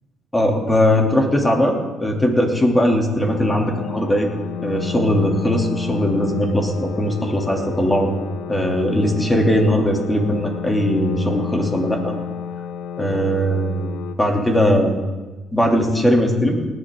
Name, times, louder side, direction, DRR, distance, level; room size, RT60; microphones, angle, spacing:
voice 1, 0.3-4.3 4.6-8.1 8.5-12.1 13.0-13.9 14.2-15.0 15.5-16.6, equal, 15° left, 2 dB, 3.1 m, -19 dB
sound 1, 3.2-14.2, left 8 dB, 70° left, 1.0 m, -31 dB
18.5 x 11.0 x 3.9 m, 1.2 s
hypercardioid pair, 55°, 0 cm